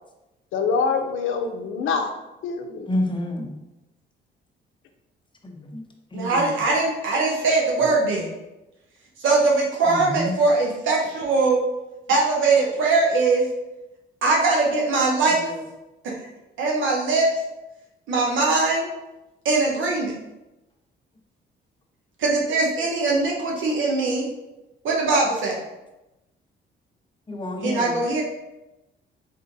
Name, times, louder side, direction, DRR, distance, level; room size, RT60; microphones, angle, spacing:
voice 1, 0.5-2.1 2.4-2.9 7.8-8.1, left 5 dB, 80° left, 5 dB, 0.6 m, -25 dB
voice 2, 2.9-3.5 5.4-5.8 6.1-6.5 9.9-10.3 15.5-15.6 27.3-28.0, left 1 dB, 25° left, 2 dB, 0.8 m, -29 dB
voice 3, 6.1-8.3 9.2-11.6 12.1-13.5 14.2-15.5 16.0-16.2 16.6-17.3 18.1-18.9 19.4-20.1 22.2-24.2 24.8-25.6 27.6-28.2, right 3 dB, 75° right, -2 dB, 0.9 m, -21 dB
4.2 x 3.7 x 2.6 m, 0.97 s
cardioid pair, 90°, 20 cm